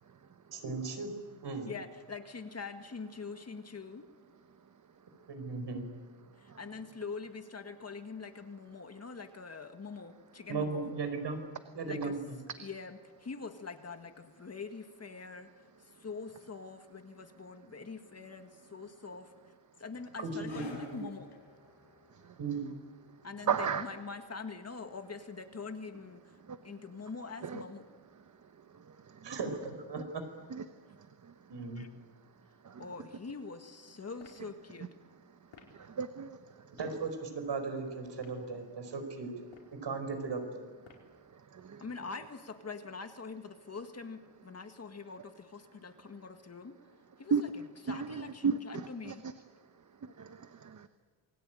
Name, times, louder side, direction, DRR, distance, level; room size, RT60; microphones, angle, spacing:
voice 1, 0.5-1.2 1.4-1.7 5.3-5.8 10.5-11.4 11.7-12.4 20.2-20.6 20.9-21.0 22.4-22.7 29.2-30.2 31.5-31.8 36.7-39.4 39.7-40.7, right 4 dB, 65° right, 7 dB, 4.9 m, -37 dB
voice 2, 1.7-4.1 6.4-10.9 11.8-12.1 12.6-15.5 15.8-19.3 19.8-21.3 23.2-26.2 26.6-27.8 31.8-31.9 32.8-34.9 41.8-46.8 47.2-49.2, left 4 dB, 35° left, 7 dB, 1.8 m, -44 dB
sound 1, 20.4-27.4 27.7-27.9 28.6-28.7, left 3 dB, 60° left, 6.7 m, -56 dB
voice 3, 23.5-23.8 26.5-26.6 27.4-27.6 29.1-29.4 30.5-30.6 32.6-32.8 35.7-36.4 41.5-41.8 47.3-47.4 47.9-49.1 50.0-50.9, right 6 dB, 40° right, 10 dB, 1.0 m, -34 dB
sound 2, 34.2-34.5 35.5-35.8 36.8-37.0 38.1-38.5 39.4-39.8 40.8-41.2, left 6 dB, 85° left, 4.9 m, -56 dB
28.0 x 21.0 x 9.2 m, 1.5 s
wide cardioid pair, 150°, 45 cm